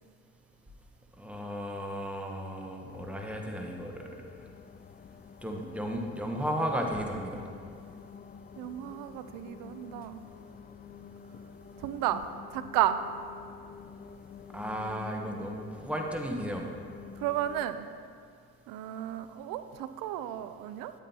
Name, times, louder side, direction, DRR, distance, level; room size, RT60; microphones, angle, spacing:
voice 1, 1.2-4.1 5.4-7.4 14.5-16.7, equal, 5° right, 1 dB, 1.2 m, -34 dB
sound 1, 2.9-17.7, left 7 dB, 30° left, 0.4 m, -49 dB
voice 2, 8.6-10.2 11.8-12.2 12.5-13.0 17.2-17.9 18.7-20.9, right 12 dB, 75° right, 12 dB, 0.5 m, -32 dB
9.7 x 8.6 x 2.9 m, 2.3 s
hypercardioid pair, 55°, 34 cm